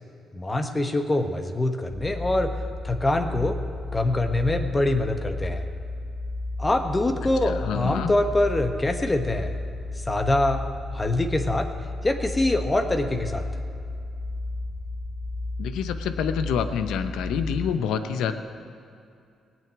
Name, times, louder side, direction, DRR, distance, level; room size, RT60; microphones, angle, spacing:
voice 1, 0.3-2.5 2.8-3.6 3.9-5.6 6.6-9.5 9.9-10.6 10.9-11.7 12.0-13.4, left 1 dB, 25° left, 5 dB, 1.2 m, -24 dB
sound 1, 1.9-17.7, left 2 dB, 55° left, 1.9 m, -33 dB
voice 2, 7.4-8.1 15.6-18.3, left 7 dB, 80° left, 9 dB, 0.8 m, -27 dB
18.5 x 6.2 x 9.1 m, 2.5 s
supercardioid pair, 60°, 0 cm